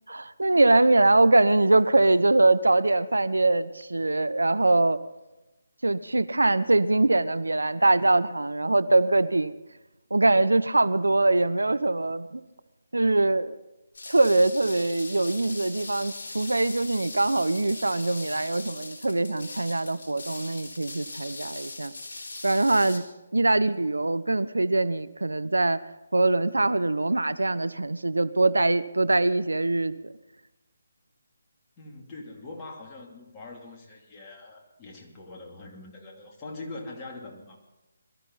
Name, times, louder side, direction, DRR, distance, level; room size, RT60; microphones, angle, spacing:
voice 1, 0.1-5.0 5.8-9.5 10.1-12.4 12.9-13.6 14.1-21.9 22.4-23.0 23.3-25.8 26.1-30.1, right 2 dB, 80° right, 16 dB, 0.7 m, -23 dB
sound 1, 13.9-23.0, left 2 dB, 60° left, 3.8 m, -40 dB
voice 2, 31.8-37.7, left 2 dB, 20° left, -1 dB, 2.8 m, -43 dB
22.5 x 13.5 x 4.1 m, 1.0 s
figure-of-eight pair, 150°, 0 cm